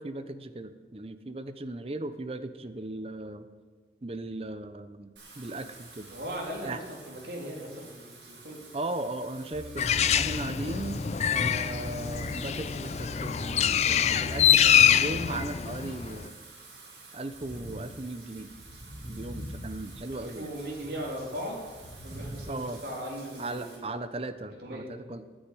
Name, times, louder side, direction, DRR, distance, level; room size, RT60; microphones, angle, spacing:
voice 1, 0.0-3.5 4.0-6.1 6.6-6.8 8.7-11.0 11.3-16.4 17.1-18.5 19.0-20.5 22.5-22.8 23.4-25.2, right 2 dB, 30° right, 11 dB, 0.7 m, -37 dB
Wind / Rain, 5.2-23.8, right 1 dB, 80° right, 5.2 m, -47 dB
voice 2, 6.1-8.7 20.1-21.6 22.0-24.1 24.6-24.9, equal, 65° right, -2 dB, 3.4 m, -38 dB
sound 1, 9.5-15.4, left 2 dB, 75° left, 2.5 m, -41 dB
Bird, 9.8-16.3, left 9 dB, 35° left, 0.4 m, -25 dB
9.9 x 9.3 x 9.9 m, 1.5 s
head